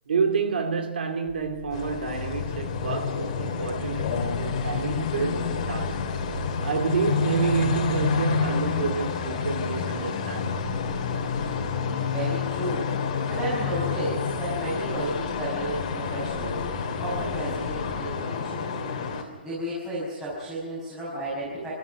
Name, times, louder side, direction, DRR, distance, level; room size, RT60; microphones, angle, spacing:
voice 1, 0.1-4.1 4.4-6.0 6.6-10.7, right 5 dB, 65° right, 2.4 m, -28 dB
sound 1, 1.3-18.2, left 3 dB, 15° left, 2.1 m, -42 dB
sound 2, 1.7-19.2, left 6 dB, 35° left, 3.2 m, -29 dB
voice 2, 12.0-12.9 13.3-18.8 19.1-21.7, right 1 dB, 10° right, 6.0 m, -33 dB
28.0 x 13.0 x 9.3 m
hypercardioid pair, 170°, 6 cm